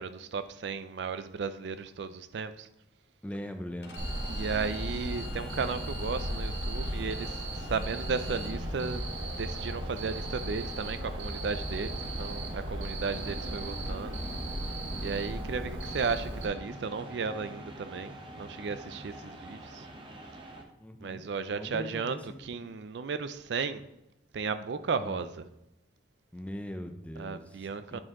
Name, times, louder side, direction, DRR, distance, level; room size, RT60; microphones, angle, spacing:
voice 1, 0.0-2.7 4.3-9.0 9.3-14.2 15.0-19.9 21.0-23.8 24.3-25.5 27.2-28.0, right 5 dB, 65° right, 12 dB, 0.4 m, -35 dB
voice 2, 3.2-4.0 20.8-21.2 21.5-22.6 25.0-25.2 26.3-28.0, equal, 5° left, 6 dB, 0.4 m, -41 dB
Bowed string instrument, 3.8-8.5, left 8 dB, 60° left, 0.6 m, -50 dB
sound 1, 3.8-20.6, right 1 dB, 25° right, 0.7 m, -46 dB
Cricket, 4.0-16.5, right 1 dB, 90° right, 1.3 m, -36 dB
8.8 x 4.5 x 3.6 m, 0.86 s
head